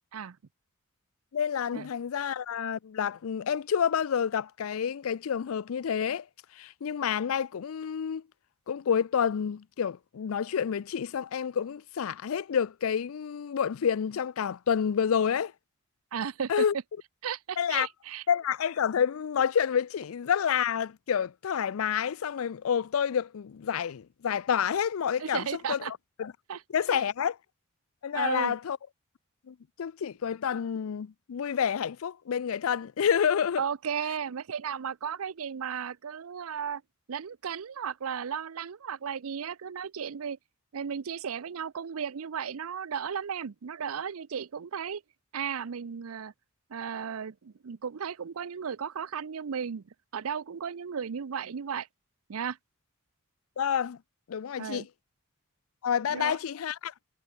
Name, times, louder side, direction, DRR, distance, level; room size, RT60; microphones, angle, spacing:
voice 1, 1.3-6.2 6.6-8.2 8.7-15.5 16.5-16.7 17.6-17.9 18.3-25.8 26.2-26.3 26.7-27.4 28.0-28.8 29.5-33.6 53.6-54.0 54.3-54.8 55.8-56.9, left 7 dB, 70° left, 0.4 m, -29 dB
voice 2, 16.1-16.6 17.2-18.2 25.2-25.9 26.5-26.6 26.9-27.0 28.1-28.5 33.6-36.8 37.1-40.4 40.7-45.0 45.3-46.3 46.7-51.9 52.3-52.6 54.6-54.9 56.1-56.4, right 7 dB, 75° right, 0.5 m, -35 dB
head